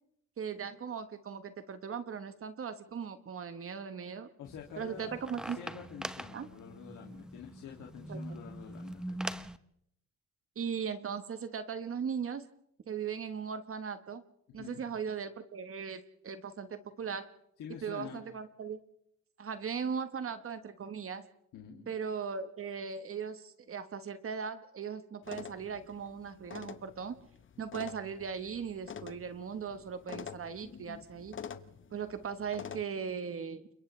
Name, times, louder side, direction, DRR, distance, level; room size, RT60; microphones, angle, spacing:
voice 1, 0.4-4.3 4.8-5.6 6.3-6.5 8.1-8.2 10.6-12.4 12.9-14.2 14.5-17.3 17.8-18.8 19.4-21.3 21.9-27.2 27.6-31.4 31.9-33.6, right 6 dB, 45° right, 10 dB, 1.2 m, -38 dB
voice 2, 4.4-5.1 5.4-9.2 14.6-14.8 17.6-18.2 21.5-21.9, left 7 dB, 80° left, 0 dB, 2.5 m, -47 dB
sound 1, 4.4-9.6, right 1 dB, ahead, 0.9 m, -43 dB
sound 2, 25.2-32.8, left 7 dB, 40° left, 1.1 m, -47 dB
29.5 x 27.0 x 3.3 m, 0.75 s
cardioid pair, 90°, 30 cm